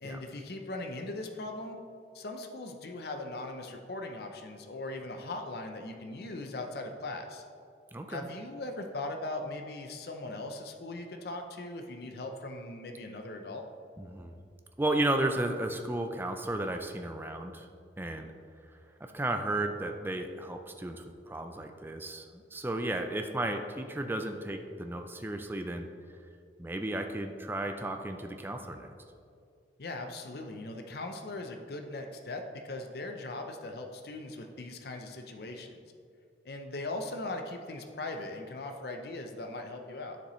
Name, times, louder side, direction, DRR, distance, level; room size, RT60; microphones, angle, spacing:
voice 1, 0.0-1.8 2.1-7.4 8.1-13.7 29.8-35.8 36.4-40.2, left 2 dB, 60° left, 4 dB, 0.6 m, -39 dB
voice 2, 7.9-8.3 14.0-14.3 14.8-17.7 18.0-18.3 19.0-25.9 26.6-28.9, right 1 dB, 10° right, 5 dB, 0.4 m, -34 dB
9.9 x 6.8 x 3.1 m, 2.3 s
head